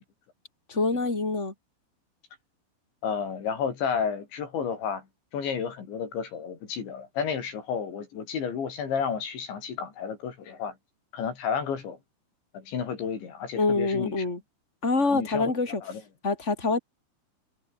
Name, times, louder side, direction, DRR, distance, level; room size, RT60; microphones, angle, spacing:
voice 1, 0.7-1.5 13.6-14.4 14.8-15.8 16.2-16.8, left 3 dB, 15° left, 5.7 m, -25 dB
voice 2, 3.0-5.1 5.3-10.8 11.1-12.0 12.5-14.2 15.0-16.0, left 6 dB, 70° left, 6.3 m, -31 dB
omnidirectional pair, 5.5 m